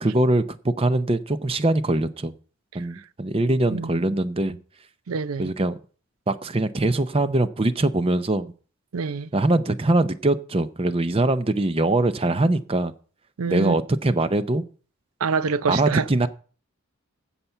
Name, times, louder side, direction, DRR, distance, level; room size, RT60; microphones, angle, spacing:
voice 1, 0.0-2.3 2.7-4.6 5.4-5.8 6.3-8.5 9.3-12.9 13.5-14.6 15.7-16.3, right 2 dB, 25° right, 0.5 m, -22 dB
voice 2, 5.1-5.5 8.9-9.3 13.4-13.7 15.2-16.1, right 5 dB, 90° right, 0.5 m, -26 dB
15.0 x 5.8 x 5.6 m
head